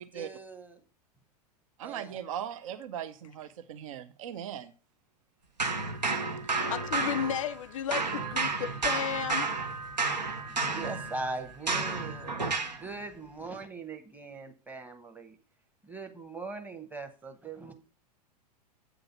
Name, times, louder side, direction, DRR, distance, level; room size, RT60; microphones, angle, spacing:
voice 1, 0.1-0.8 1.8-2.2 10.5-12.5 12.8-15.4 15.8-17.7, right 3 dB, 10° right, 1.0 m, -41 dB
voice 2, 1.8-4.7, right 9 dB, 50° right, 0.6 m, -39 dB
sound 1, 5.6-7.7 7.9-12.8, right 4 dB, 80° right, 1.0 m, -31 dB
voice 3, 6.7-9.5, left 9 dB, 50° left, 0.4 m, -33 dB
8.0 x 3.9 x 5.7 m
figure-of-eight pair, 95°, 21 cm